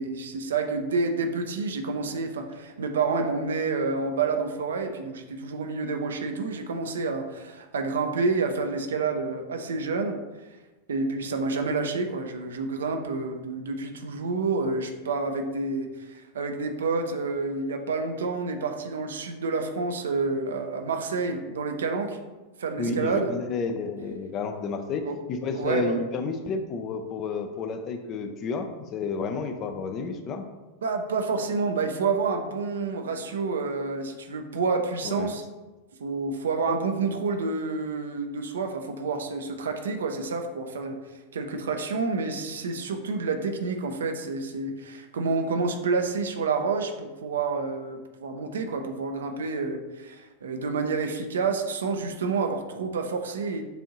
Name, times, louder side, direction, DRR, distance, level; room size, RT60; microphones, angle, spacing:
voice 1, 0.0-10.2 10.9-22.2 22.6-23.3 25.0-25.2 25.5-26.0 30.8-35.4 36.0-41.0 41.3-53.6, right 4 dB, 65° right, 5 dB, 0.5 m, -29 dB
voice 2, 22.8-30.4 35.0-35.3, left 4 dB, 35° left, 7 dB, 0.4 m, -31 dB
6.9 x 2.6 x 2.9 m, 1.1 s
figure-of-eight pair, 90°, 0 cm